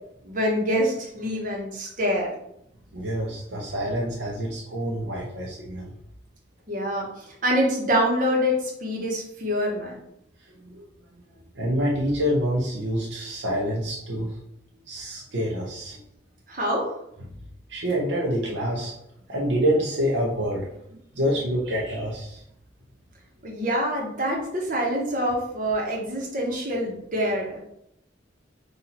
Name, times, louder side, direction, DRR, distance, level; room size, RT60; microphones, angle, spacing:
voice 1, 0.2-2.3 6.7-10.0 16.5-16.9 23.4-27.6, equal, 45° right, -2 dB, 1.1 m, -25 dB
voice 2, 2.9-5.9 10.6-10.8 11.5-14.4 14.9-16.0 17.7-18.9 19.3-20.7 21.1-22.4, equal, 70° right, -3 dB, 0.8 m, -27 dB
4.1 x 2.6 x 4.2 m, 0.77 s
head